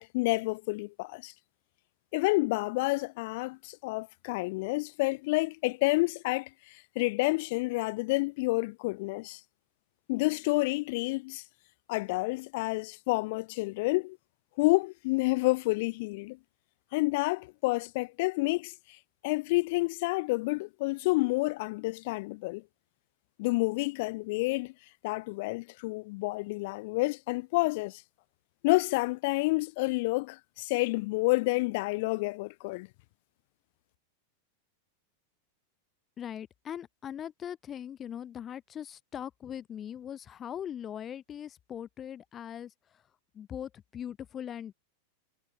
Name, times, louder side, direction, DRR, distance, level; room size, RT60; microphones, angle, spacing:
voice 1, 0.0-1.3 2.1-9.4 10.1-11.4 11.9-14.2 14.6-16.4 16.9-18.7 19.2-22.6 23.4-24.7 25.0-28.0 28.6-32.9, left 24 dB, 50° left, 0.5 m, -29 dB
voice 2, 36.2-42.7 43.3-44.7, left 9 dB, 25° left, 5.2 m, -40 dB
figure-of-eight pair, 90°, 0 cm